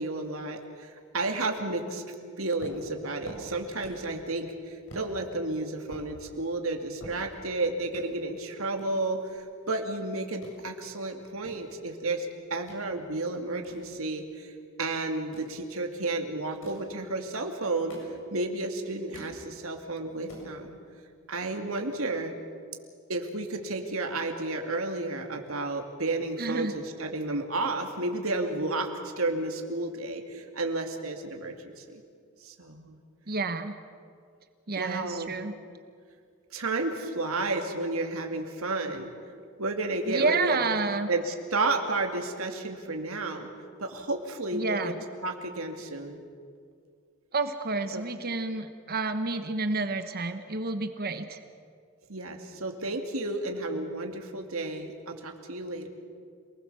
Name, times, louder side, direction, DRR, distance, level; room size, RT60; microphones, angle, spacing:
voice 1, 0.0-2.0 2.4-18.0 18.3-20.8 21.3-22.3 23.1-32.0 32.4-33.0 34.7-35.3 36.5-39.1 39.6-40.6 41.1-43.5 43.8-44.9 45.2-46.2 47.9-48.0 52.1-55.9, right 2 dB, 85° right, 4 dB, 2.6 m, -32 dB
sound 1, 2.6-4.1 4.5-4.6 4.9-5.1 5.6-7.6 7.9-8.1 8.8-10.0 10.2-10.6 11.1-12.8 13.2-14.5 15.2-15.6 16.4-16.9 17.5-18.5 18.8-19.4 19.8-19.9 20.1-20.5, equal, 65° left, 7.0 m, -48 dB
voice 2, 26.4-26.7 33.3-33.7 34.7-35.5 40.1-41.1 44.5-44.9 47.3-51.4, right 3 dB, 50° right, 9 dB, 1.2 m, -29 dB
27.5 x 20.0 x 7.1 m, 2.2 s
head